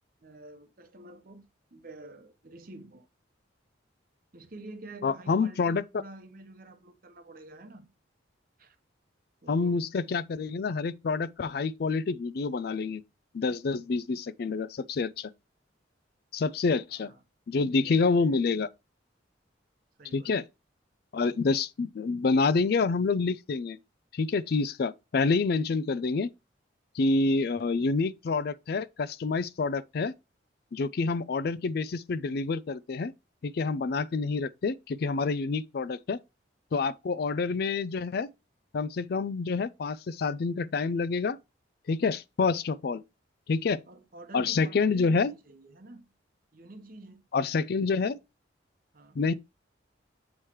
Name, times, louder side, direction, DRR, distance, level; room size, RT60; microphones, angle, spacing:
voice 1, 0.2-3.1 4.3-7.9 8.6-8.8 9.4-9.8 16.9-17.2 17.8-18.4 20.0-20.3 37.0-37.3 43.9-46.1 46.5-47.2 48.9-49.2, right 2 dB, 45° right, 0.8 m, -48 dB
voice 2, 5.0-5.8 9.5-13.0 13.3-15.3 16.3-17.1 17.5-18.7 20.1-20.4 21.1-23.8 24.1-26.3 26.9-30.1 30.7-33.1 33.4-36.2 36.7-38.3 38.7-41.4 41.9-43.0 43.5-43.8 44.3-45.3 47.3-48.2 49.2-49.3, left 4 dB, 55° left, 0.4 m, -27 dB
7.4 x 3.2 x 4.4 m
head